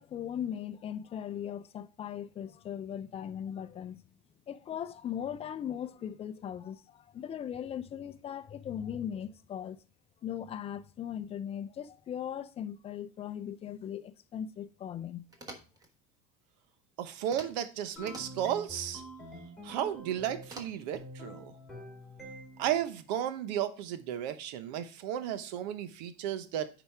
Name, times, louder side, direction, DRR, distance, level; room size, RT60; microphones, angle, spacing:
voice 1, 0.0-4.0 4.5-9.8 10.2-15.2, left 9 dB, 30° left, 0.6 m, -39 dB
sound 1, 15.3-15.9 17.2-17.7 17.9-18.6 20.4-21.1, right 2 dB, 15° right, 1.3 m, -48 dB
voice 2, 17.0-19.0 19.6-21.5 22.6-26.7, right 10 dB, 90° right, 0.9 m, -34 dB
sound 2, 18.0-20.6 20.9-22.8, equal, ahead, 3.2 m, -46 dB
8.7 x 5.0 x 3.5 m
cardioid pair, 140°, 21 cm